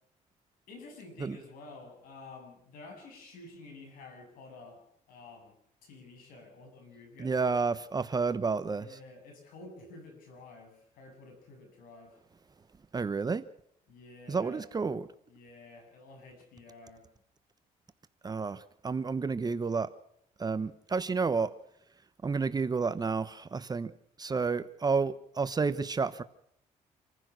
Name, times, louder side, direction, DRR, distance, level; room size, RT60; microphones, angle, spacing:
voice 1, 0.7-4.8 5.1-7.4 8.8-12.2 13.9-14.7 15.3-17.1, left 3 dB, 90° left, 4 dB, 7.4 m, -50 dB
voice 2, 7.2-9.0 12.9-13.4 14.3-15.1 18.2-19.9 20.4-21.5 22.2-23.9 24.2-26.2, right 4 dB, 30° right, 12 dB, 1.0 m, -30 dB
27.0 x 15.5 x 6.3 m, 0.68 s
cardioid pair, 105°, 14 cm